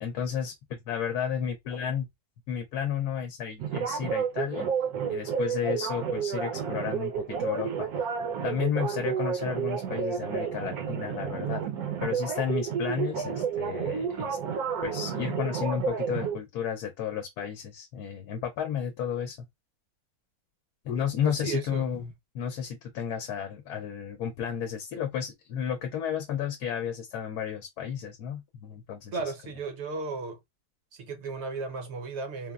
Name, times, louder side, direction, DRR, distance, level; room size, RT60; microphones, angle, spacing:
voice 1, 0.0-2.1 2.5-4.7 5.1-8.1 8.4-11.6 12.0-14.4 14.8-19.5 20.8-29.2, left 8 dB, 80° left, 1.1 m, -32 dB
sound 1, 3.6-16.4, right 7 dB, 80° right, 1.1 m, -31 dB
voice 2, 21.2-21.9 29.1-30.4 30.9-32.5, right 4 dB, 60° right, 0.8 m, -35 dB
3.3 x 2.1 x 2.3 m
omnidirectional pair, 1.6 m